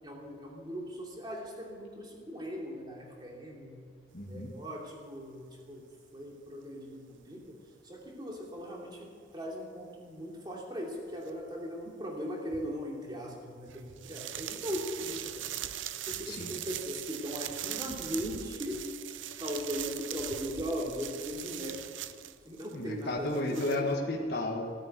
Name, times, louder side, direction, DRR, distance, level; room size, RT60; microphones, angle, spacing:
voice 1, 0.0-4.0 4.3-5.9 6.1-18.8 19.4-21.8 22.5-23.9, equal, 25° right, -2 dB, 2.9 m, -39 dB
voice 2, 4.1-4.5 16.3-16.6 22.7-24.8, left 1 dB, 55° left, 0 dB, 1.6 m, -33 dB
sound 1, 11.3-11.4 12.5-12.7 13.7-22.8 23.0-23.8, right 11 dB, 85° right, 0.6 m, -40 dB
17.0 x 9.6 x 8.0 m, 2.1 s
head